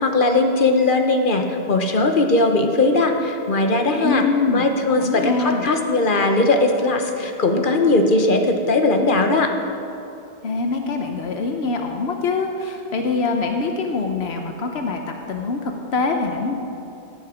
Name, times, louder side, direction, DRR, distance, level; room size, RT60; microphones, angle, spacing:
voice 1, 0.0-4.2 4.5-9.5, left 2 dB, 55° left, 5 dB, 1.2 m, -19 dB
voice 2, 4.0-5.7 10.4-16.6, left 4 dB, 85° left, 3 dB, 1.1 m, -24 dB
16.5 x 9.2 x 5.0 m, 2.7 s
omnidirectional pair, 1.0 m